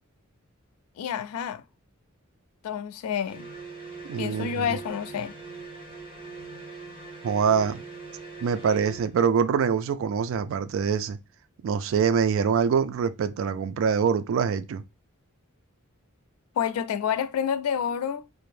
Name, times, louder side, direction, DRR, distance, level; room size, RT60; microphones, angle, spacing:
voice 1, 1.0-1.6 2.6-3.5 4.2-5.3 16.6-18.3, left 8 dB, 90° left, 0.3 m, -29 dB
sound 1, 3.2-9.2, right 3 dB, 25° right, 1.1 m, -42 dB
voice 2, 4.1-4.7 7.2-7.8 8.4-11.2 11.6-14.8, right 6 dB, 65° right, 0.3 m, -24 dB
2.5 x 2.0 x 3.1 m
head